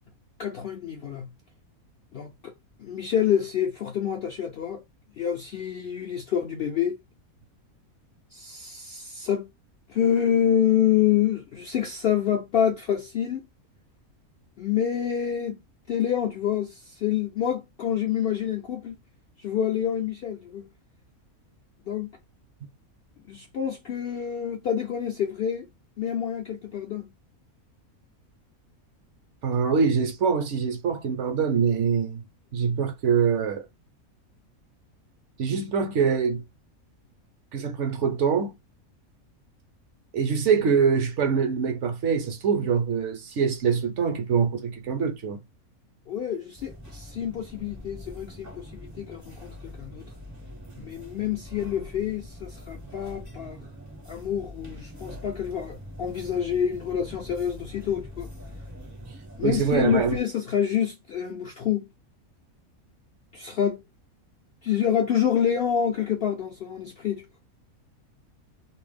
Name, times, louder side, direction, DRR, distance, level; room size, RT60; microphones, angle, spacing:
voice 1, 0.4-1.3 2.1-2.5 2.8-4.8 5.2-7.0 8.3-9.5 9.9-13.5 14.6-15.6 15.9-19.0 19.4-20.7 21.9-22.1 23.3-25.7 26.0-27.1 46.1-50.1 50.8-53.6 54.1-58.3 59.4-61.9 63.3-63.8 64.6-67.2, left 9 dB, 70° left, 0.6 m, -27 dB
voice 2, 29.4-32.2 32.5-33.6 35.4-36.4 37.5-38.5 40.1-45.4 59.4-60.2, right 6 dB, 65° right, 0.8 m, -24 dB
sound 1, 46.6-60.2, equal, 20° right, 0.5 m, -43 dB
2.6 x 2.1 x 3.2 m
omnidirectional pair, 1.5 m